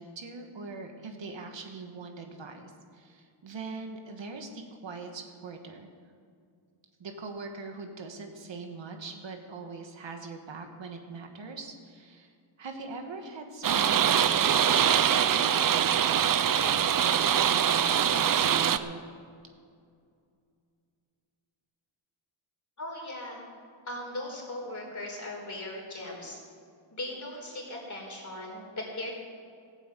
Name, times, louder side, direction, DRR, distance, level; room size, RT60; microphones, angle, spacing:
voice 1, 0.0-5.9 7.0-19.0, right 4 dB, 60° right, 4 dB, 1.7 m, -42 dB
sound 1, 13.6-18.8, right 9 dB, 45° right, 0.6 m, -23 dB
voice 2, 22.8-23.5 23.8-26.4 26.9-29.1, left 1 dB, 35° left, -1 dB, 4.3 m, -38 dB
14.5 x 8.2 x 8.4 m, 2.3 s
wide cardioid pair, 120°, 49 cm